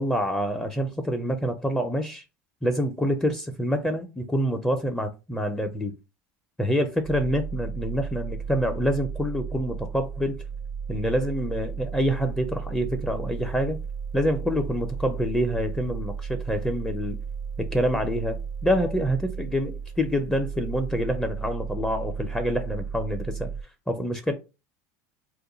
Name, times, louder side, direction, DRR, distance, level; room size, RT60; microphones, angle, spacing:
voice 1, 0.0-2.2 2.6-5.9 6.6-10.4 10.9-13.8 14.1-17.2 17.6-23.5 23.9-24.3, equal, 10° left, 0.4 m, -26 dB
sound 1, 7.0-23.6, right 6 dB, 55° right, 0.4 m, -34 dB
2.5 x 2.2 x 3.8 m
supercardioid pair, 110°, 7 cm